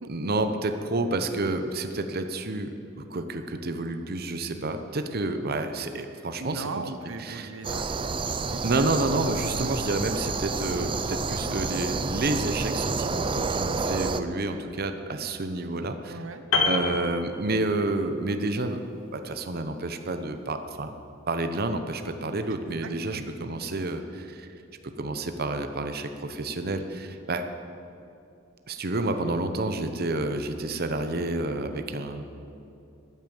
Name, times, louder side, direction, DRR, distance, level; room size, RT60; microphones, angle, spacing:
voice 1, 0.1-2.7 3.1-6.8 7.2-7.5 8.6-16.2 16.6-18.8 19.1-20.9 21.3-24.5 24.8-27.4 28.7-32.2, right 2 dB, 50° right, 8 dB, 0.9 m, -29 dB
voice 2, 6.4-9.0 9.5-9.8 16.1-16.4 22.5-23.3, right 3 dB, 85° right, 8 dB, 0.7 m, -39 dB
sound 1, 7.6-14.2, right 4 dB, 25° right, 0.5 m, -29 dB
Piano, 16.5-18.0 18.2-18.5, left 4 dB, 90° left, 1.7 m, -27 dB
14.0 x 8.9 x 7.8 m, 2.7 s
head